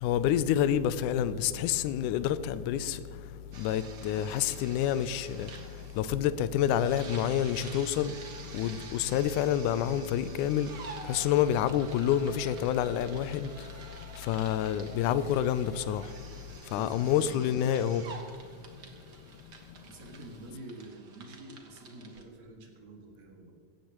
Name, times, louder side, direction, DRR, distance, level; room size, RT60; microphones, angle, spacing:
voice 1, 0.0-3.0 3.6-5.5 6.0-8.1 8.5-10.7 11.1-13.5 14.3-16.0 16.7-18.0, left 10 dB, 90° left, 2.1 m, -28 dB
sound 1, 3.5-22.2, right 4 dB, 45° right, 1.5 m, -48 dB
voice 2, 16.7-17.5 19.8-23.5, right 2 dB, 65° right, 3.4 m, -47 dB
17.5 x 14.5 x 3.0 m
omnidirectional pair, 3.5 m